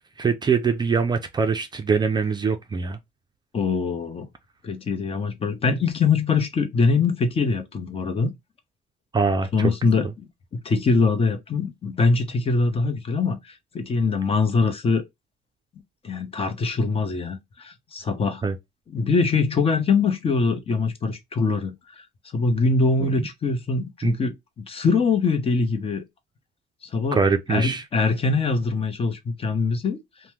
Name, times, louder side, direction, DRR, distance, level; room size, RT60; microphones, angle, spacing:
voice 1, 0.2-3.0 9.1-9.7 18.4-18.6 23.0-23.1 24.0-24.2 27.1-27.8, right 5 dB, 25° right, 0.4 m, -23 dB
voice 2, 3.5-4.3 4.6-8.3 9.5-15.0 16.0-18.4 18.9-22.0 22.3-26.0 26.9-27.2 27.5-30.0, left 4 dB, 35° left, 0.8 m, -23 dB
2.8 x 2.1 x 3.3 m
cardioid pair, 110°, 17 cm